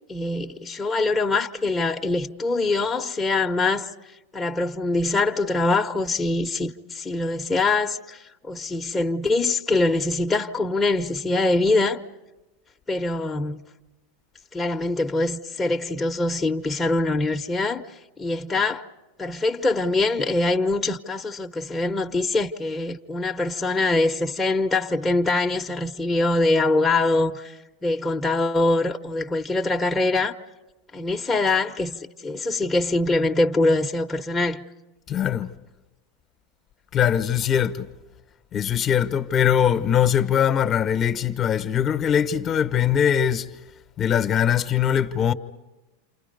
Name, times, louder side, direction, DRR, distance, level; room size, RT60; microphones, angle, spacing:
voice 1, 0.1-3.9 4.3-12.0 12.9-13.6 14.5-18.8 19.2-30.4 30.9-34.6, left 2 dB, 15° left, 1.0 m, -23 dB
voice 2, 35.1-35.5 36.9-37.9 38.5-43.5 44.0-45.3, left 9 dB, 35° left, 1.1 m, -21 dB
29.0 x 27.5 x 5.3 m
hypercardioid pair, 105°, 0 cm